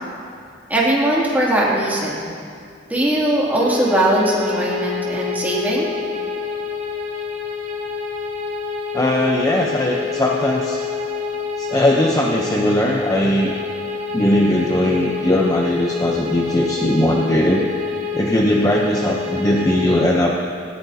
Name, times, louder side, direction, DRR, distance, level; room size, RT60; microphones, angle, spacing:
voice 1, 0.7-2.3 2.9-5.9, right 1 dB, 10° right, -6 dB, 2.6 m, -19 dB
sound 1, 3.6-20.1, left 6 dB, 35° right, 1.7 m, -27 dB
voice 2, 8.9-10.8 11.6-13.5 14.1-17.7 18.1-20.4, left 1 dB, 20° left, -1 dB, 0.8 m, -19 dB
18.5 x 17.5 x 2.8 m, 2.4 s
head